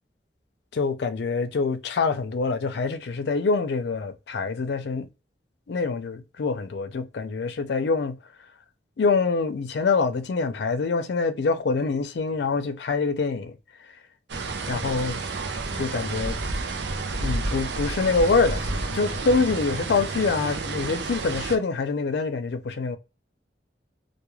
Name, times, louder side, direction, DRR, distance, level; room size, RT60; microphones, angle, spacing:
voice 1, 0.7-5.1 5.7-8.2 9.0-13.6 14.7-15.2 15.7-16.4 17.2-23.0, left 4 dB, 65° left, 0.4 m, -25 dB
Road Noise Rain Victory Monument Bangkok, 14.3-21.6, right 3 dB, 80° right, 0.5 m, -30 dB
2.3 x 2.2 x 3.0 m
head